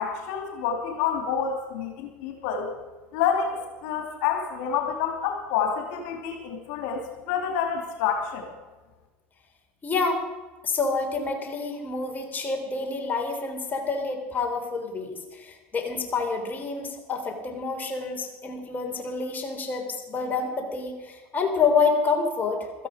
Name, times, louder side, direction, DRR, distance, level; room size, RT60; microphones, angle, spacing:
voice 1, 0.0-2.7 3.1-8.5, left 7 dB, 70° left, 2 dB, 2.9 m, -28 dB
voice 2, 9.8-10.2 10.6-22.9, left 4 dB, 30° left, 2 dB, 3.5 m, -28 dB
16.0 x 13.5 x 5.1 m, 1.2 s
supercardioid pair, 90°, 6 cm